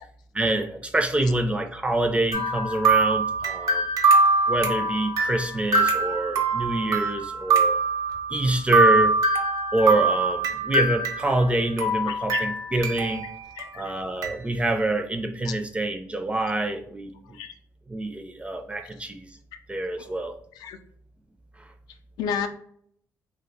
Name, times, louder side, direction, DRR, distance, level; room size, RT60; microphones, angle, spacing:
voice 1, 0.3-3.8 4.5-7.8 8.3-9.2 9.7-13.3 13.7-17.4 17.9-19.3 19.7-20.3, right 2 dB, 20° right, 6 dB, 0.3 m, -26 dB
sound 1, 2.3-11.5 11.8-13.2 13.6-13.7 14.2-14.3, right 3 dB, 75° right, 0.7 m, -23 dB
voice 2, 12.1-12.5 13.6-13.9 15.4-15.5 17.3-17.5 20.6-20.8 22.2-22.5, left 7 dB, 85° left, 6 dB, 0.4 m, -31 dB
2.6 x 2.1 x 4.0 m, 0.64 s
cardioid pair, 85°, 7 cm